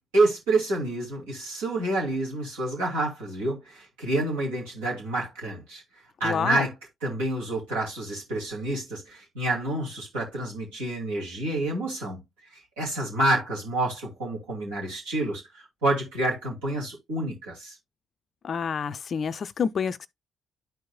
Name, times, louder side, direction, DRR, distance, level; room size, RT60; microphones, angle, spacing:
voice 1, 0.1-5.8 6.2-6.7 7.0-12.2 12.8-15.4 15.8-17.8, right 2 dB, 75° right, 2.6 m, -28 dB
voice 2, 6.2-6.7 18.4-20.1, left 6 dB, 45° left, 0.4 m, -28 dB
11.5 x 4.7 x 2.2 m
figure-of-eight pair, 45°, 0 cm